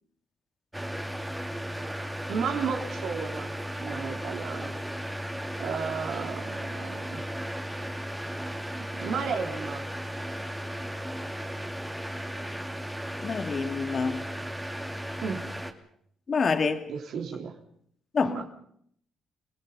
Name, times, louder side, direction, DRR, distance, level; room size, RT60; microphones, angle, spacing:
sound 1, 0.7-15.7, equal, 10° right, 2.5 m, -35 dB
voice 1, 2.3-4.7 5.6-7.2 8.8-9.8 15.2-15.5 16.9-17.6 18.2-18.4, right 6 dB, 75° right, 3.5 m, -33 dB
voice 2, 13.2-14.3 16.3-16.8 18.1-18.4, left 5 dB, 45° left, 2.4 m, -27 dB
29.0 x 19.0 x 5.6 m
cardioid pair, 90°, 0 cm